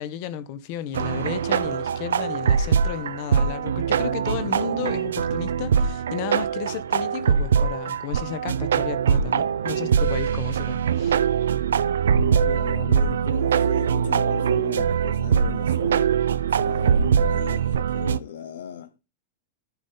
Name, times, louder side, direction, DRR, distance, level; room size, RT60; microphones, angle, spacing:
voice 1, 0.0-11.2, left 11 dB, 45° left, 1.1 m, -33 dB
sound 1, 0.9-18.2, right 7 dB, 65° right, 0.5 m, -22 dB
voice 2, 12.3-18.9, left 9 dB, 65° left, 0.8 m, -37 dB
13.5 x 5.3 x 3.9 m
figure-of-eight pair, 90°, 0 cm